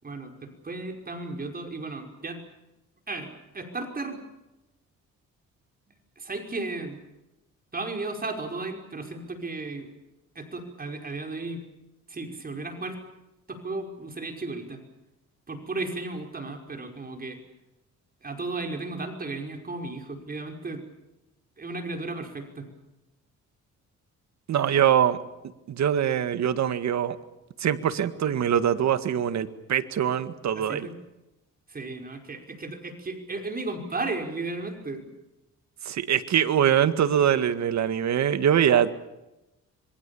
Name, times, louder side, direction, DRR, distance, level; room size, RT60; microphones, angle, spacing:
voice 1, 0.0-2.4 3.1-4.2 6.2-7.0 7.7-9.9 10.4-11.6 12.1-13.0 13.5-14.8 15.5-17.4 18.2-20.8 21.6-22.7 30.5-30.9 31.7-35.0, right 3 dB, 30° right, 3 dB, 5.5 m, -34 dB
voice 2, 24.5-25.2 25.7-27.2 27.6-30.9 35.9-38.9, right 9 dB, 65° right, 11 dB, 1.9 m, -23 dB
27.0 x 23.0 x 7.1 m, 0.95 s
cardioid pair, 90°, 30 cm